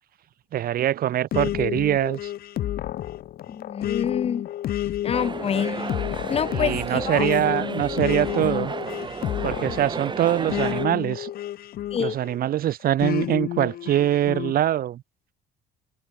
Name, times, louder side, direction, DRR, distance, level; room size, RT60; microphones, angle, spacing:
voice 1, 0.5-2.3 6.5-8.7 9.4-11.3 12.0-15.0, right 12 dB, 60° right, 2.1 m, -23 dB
sound 1, 1.3-12.4 13.0-14.5, left 12 dB, 65° left, 1.7 m, -30 dB
voice 2, 3.5-4.5 5.0-6.0 6.3-7.3 11.9-12.1, left 7 dB, 35° left, 1.0 m, -27 dB
sound 2, 5.1-10.9, right 5 dB, 25° right, 2.7 m, -33 dB
cardioid pair, 110°, 17 cm